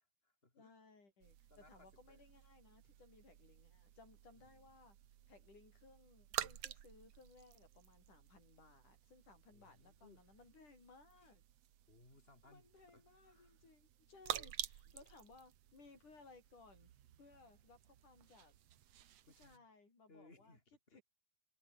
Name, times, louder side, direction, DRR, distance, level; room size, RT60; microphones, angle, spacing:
voice 1, 0.0-0.8 1.5-2.2 4.3-4.7 9.5-10.2 11.2-11.3 11.9-13.6 14.9-15.0 19.3-19.7 20.1-21.0, left 2 dB, 15° left, 5.2 m, -66 dB
voice 2, 0.5-5.0 5.3-11.4 12.4-16.9 17.2-18.6 19.4-20.6 20.9-21.0, left 3 dB, 50° left, 9.3 m, -63 dB
sound 1, 1.2-19.6, right 11 dB, 65° right, 1.6 m, -51 dB
omnidirectional pair, 4.5 m